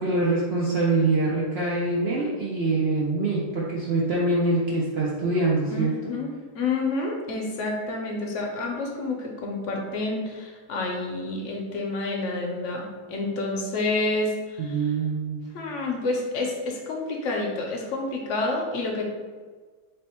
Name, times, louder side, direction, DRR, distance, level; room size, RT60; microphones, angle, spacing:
voice 1, 0.0-6.0 14.6-15.5, right 2 dB, 85° right, -5 dB, 0.5 m, -24 dB
voice 2, 5.7-6.3 6.5-14.8 15.5-19.1, left 2 dB, 65° left, 1 dB, 0.8 m, -29 dB
3.4 x 2.7 x 4.2 m, 1.4 s
omnidirectional pair, 1.8 m